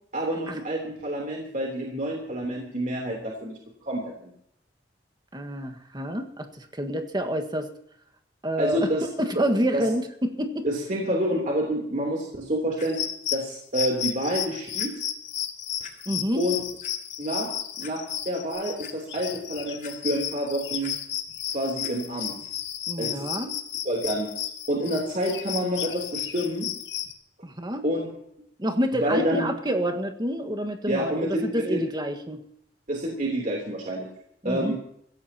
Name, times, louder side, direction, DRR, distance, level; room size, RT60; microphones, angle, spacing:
voice 1, 0.1-4.3 8.6-9.1 9.3-9.4 9.7-9.8 10.6-13.0 13.3-14.9 16.3-16.6 17.2-17.5 17.8-20.9 21.5-22.4 23.0-23.3 23.8-24.3 24.7-26.7 27.8-28.1 28.9-29.5 30.9-31.8 32.9-34.1 34.4-34.8, equal, 45° right, -2 dB, 3.2 m, -28 dB
voice 2, 5.3-7.7 8.4-8.8 9.2-10.7 16.0-16.4 22.9-23.5 27.4-27.8 28.6-32.4 34.4-34.7, equal, 25° right, 5 dB, 1.6 m, -28 dB
sound 1, 12.8-27.1, left 10 dB, 85° left, 1.7 m, -33 dB
Clock, 12.8-12.9 13.8-13.9 14.3-14.4 14.8-14.9 15.8-15.9 16.6-16.9 17.4-17.5 17.8-17.9 18.4-18.9 19.8-20.3 20.6-20.9 21.8-21.9 22.6-22.7, left 6 dB, 50° left, 4.0 m, -45 dB
24.5 x 16.5 x 2.9 m, 0.70 s
head